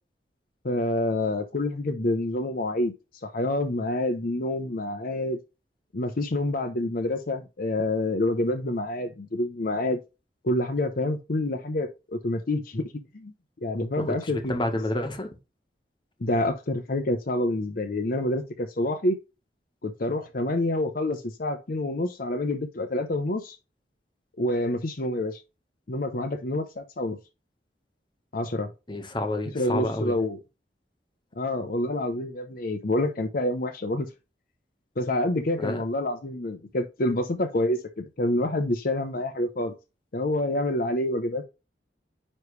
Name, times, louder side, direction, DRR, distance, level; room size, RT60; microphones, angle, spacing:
voice 1, 0.6-2.9 3.2-5.4 5.9-10.0 10.4-13.3 13.6-14.5 16.2-19.2 19.8-23.6 24.4-25.4 25.9-27.2 28.3-28.7 29.5-30.4 31.4-34.1 35.0-39.7 40.1-41.4, left 1 dB, 55° left, 0.7 m, -27 dB
voice 2, 14.0-15.3 28.9-30.1 35.6-35.8, left 1 dB, 25° left, 1.2 m, -29 dB
9.6 x 3.2 x 3.2 m
head